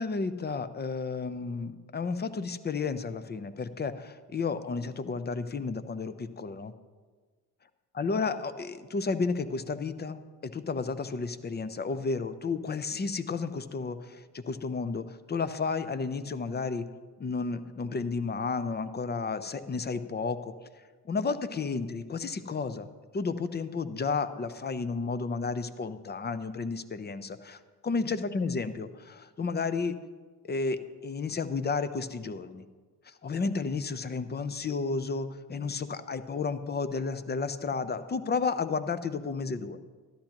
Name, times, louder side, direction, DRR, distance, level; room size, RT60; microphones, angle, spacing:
voice 1, 0.0-6.7 8.0-16.8 17.2-20.5 21.0-22.9 23.1-30.0 30.4-32.6 33.1-39.8, left 4 dB, 25° left, 12 dB, 0.7 m, -32 dB
13.0 x 11.5 x 3.0 m, 1.4 s
supercardioid pair, 70°, 44 cm